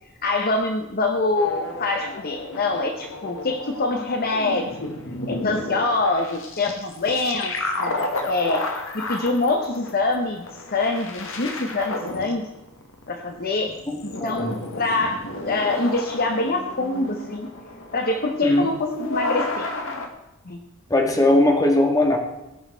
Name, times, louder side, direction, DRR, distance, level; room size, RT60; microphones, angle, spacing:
voice 1, 0.2-4.9 5.3-12.5 13.1-13.8 14.0-17.5 17.9-19.7 20.5-20.6, left 2 dB, 45° left, 5 dB, 0.9 m, -25 dB
sound 1, 1.3-20.1, left 2 dB, 65° left, 1.6 m, -32 dB
voice 2, 13.9-14.5 18.4-18.7 20.9-22.2, left 1 dB, 15° left, 1 dB, 1.8 m, -19 dB
18.5 x 6.4 x 4.5 m, 0.97 s
head